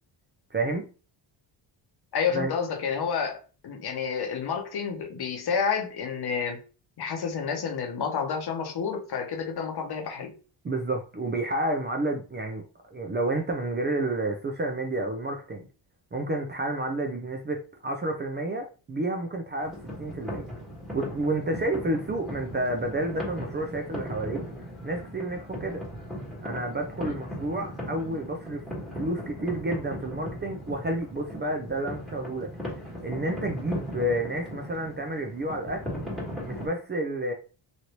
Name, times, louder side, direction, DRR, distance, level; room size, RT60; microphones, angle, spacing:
voice 1, 0.5-0.8 2.3-2.5 10.6-12.6 12.9-15.6 16.1-20.4 20.9-24.4 24.8-25.8 26.4-28.6 28.9-32.5 33.0-35.8 36.4-37.3, right 1 dB, 20° right, 3 dB, 0.5 m, -30 dB
voice 2, 2.1-6.6 7.0-10.3 27.0-27.1, left 6 dB, 50° left, 4 dB, 0.9 m, -30 dB
sound 1, 19.6-36.7, equal, ahead, 1.3 m, -38 dB
3.1 x 2.7 x 2.9 m, 0.35 s
cardioid pair, 95°, 49 cm